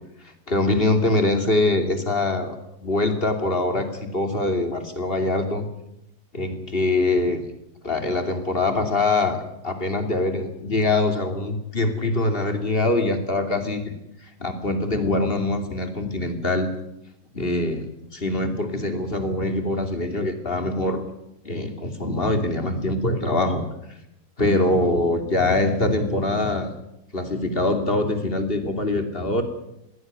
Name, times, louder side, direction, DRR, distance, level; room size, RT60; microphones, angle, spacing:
voice 1, 0.5-2.6 2.8-5.7 6.3-7.4 7.8-9.4 9.6-13.8 14.2-16.7 17.3-21.0 21.4-23.6 24.4-26.7 27.1-29.4, left 2 dB, 35° left, 7 dB, 2.9 m, -23 dB
21.0 x 16.5 x 9.4 m, 0.84 s
omnidirectional pair, 1.7 m